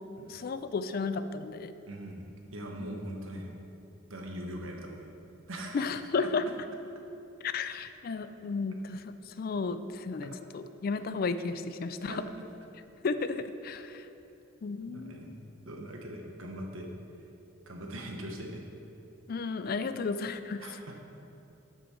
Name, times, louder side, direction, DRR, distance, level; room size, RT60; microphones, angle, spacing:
voice 1, 0.3-1.7 5.7-6.5 7.4-12.2 13.0-14.1 14.6-15.4 19.3-20.6, left 4 dB, 45° left, 11 dB, 0.3 m, -33 dB
voice 2, 1.9-2.2 2.5-3.5 4.1-5.1 5.5-5.9 12.1-12.4 14.9-15.3 15.6-16.9 17.7-18.6 20.6-20.9, right 1 dB, 80° right, 1 dB, 1.1 m, -41 dB
12.0 x 5.5 x 4.3 m, 2.9 s
head